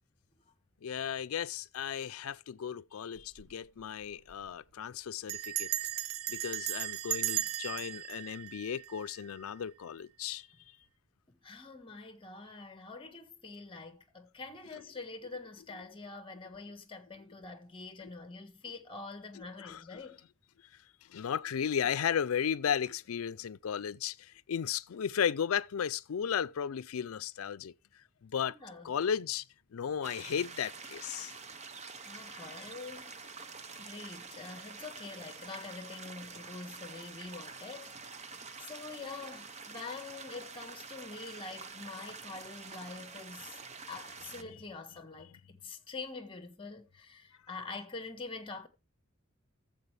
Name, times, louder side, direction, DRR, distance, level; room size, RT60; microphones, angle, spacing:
voice 1, 0.8-5.7 6.3-10.5 18.0-18.1 19.3-20.1 21.1-27.7 28.2-28.6 28.8-29.5 29.7-31.3 32.3-32.7 44.5-44.6, left 8 dB, 85° left, 0.4 m, -35 dB
Bell, 3.2-3.5 3.8-3.9 4.1-4.5 5.3-9.4, right 13 dB, 85° right, 0.5 m, -36 dB
voice 2, 11.3-20.2 28.5-28.9 32.0-33.1 33.8-38.3 38.6-43.6 43.9-48.7, left 3 dB, 25° left, 1.4 m, -45 dB
sound 1, 30.0-44.4, right 4 dB, 35° right, 0.8 m, -47 dB
13.5 x 7.5 x 3.3 m
head